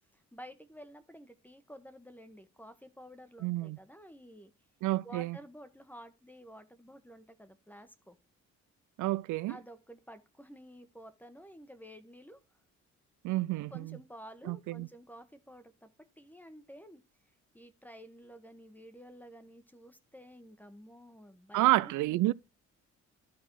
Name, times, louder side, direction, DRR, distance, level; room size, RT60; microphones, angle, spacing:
voice 1, 0.0-4.5 5.0-8.2 9.5-12.4 13.7-15.9 16.2-17.0 17.5-22.3, equal, 5° left, 1.1 m, -52 dB
voice 2, 3.4-3.8 4.8-5.4 9.0-9.6 13.2-14.0 14.5-14.9 21.5-22.3, right 18 dB, 80° right, 0.5 m, -29 dB
12.5 x 4.1 x 4.6 m
cardioid pair, 90°, 30 cm